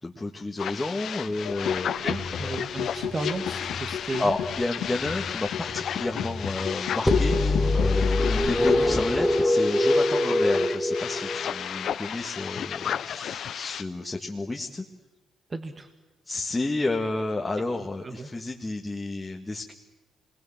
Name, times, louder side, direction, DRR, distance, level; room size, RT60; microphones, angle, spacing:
voice 1, 0.0-2.1 2.4-2.6 4.2-14.9 16.3-19.7, left 2 dB, 20° left, 0 dB, 1.9 m, -31 dB
sound 1, 0.6-13.8, left 9 dB, 65° left, 0.7 m, -34 dB
sound 2, 1.4-8.9, left 7 dB, 80° left, 3.0 m, -32 dB
voice 2, 2.0-4.4 15.5-15.9 18.0-18.3, right 3 dB, 30° right, 6 dB, 1.8 m, -34 dB
sound 3, 7.1-11.8, left 1 dB, ahead, 1.9 m, -23 dB
26.5 x 22.0 x 7.4 m, 1.1 s
cardioid pair, 90°, 0 cm